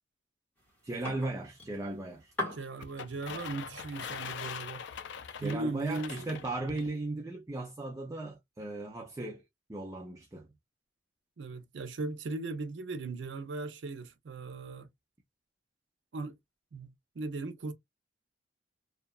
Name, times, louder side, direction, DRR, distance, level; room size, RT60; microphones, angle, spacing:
sound 1, 0.6-6.5, left 1 dB, 10° left, 1.2 m, -45 dB
voice 1, 0.8-2.3 5.4-9.4 9.7-10.5, right 2 dB, 15° right, 0.4 m, -37 dB
voice 2, 2.5-4.9 5.4-6.4 11.4-14.9 16.1-16.3 16.7-17.7, right 3 dB, 70° right, 0.5 m, -38 dB
sound 2, 2.8-6.9, left 7 dB, 70° left, 0.4 m, -42 dB
2.7 x 2.3 x 2.2 m
head